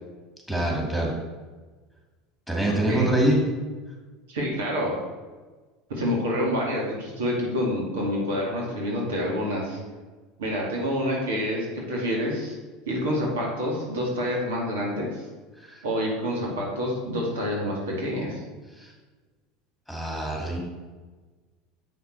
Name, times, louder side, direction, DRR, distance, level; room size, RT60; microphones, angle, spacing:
voice 1, 0.5-1.1 2.5-3.4 15.6-15.8 18.8-18.9 19.9-20.6, right 1 dB, ahead, -2 dB, 2.5 m, -25 dB
voice 2, 2.7-3.1 4.3-4.9 5.9-9.8 10.4-12.5 12.9-15.2 15.8-18.4, equal, 80° right, -2 dB, 2.1 m, -27 dB
7.4 x 5.9 x 4.5 m, 1.3 s
hypercardioid pair, 85°, 0 cm